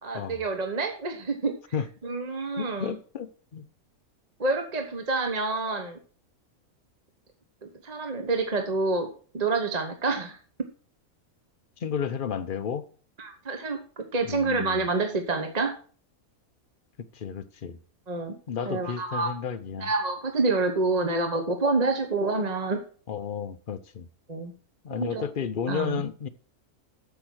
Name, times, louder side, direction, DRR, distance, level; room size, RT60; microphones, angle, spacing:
voice 1, 0.0-1.5 2.0-3.0 4.4-6.0 7.8-9.1 9.3-10.4 13.2-15.7 18.1-18.3 18.7-19.3 19.8-22.8 24.3-24.5 24.9-25.2 25.7-26.0, right 3 dB, 30° right, 1.1 m, -27 dB
voice 2, 2.6-3.7 11.8-12.9 14.2-14.8 17.1-17.8 18.5-19.9 23.1-24.1 24.8-26.3, left 7 dB, 50° left, 0.7 m, -32 dB
8.4 x 7.1 x 6.2 m
omnidirectional pair, 1.5 m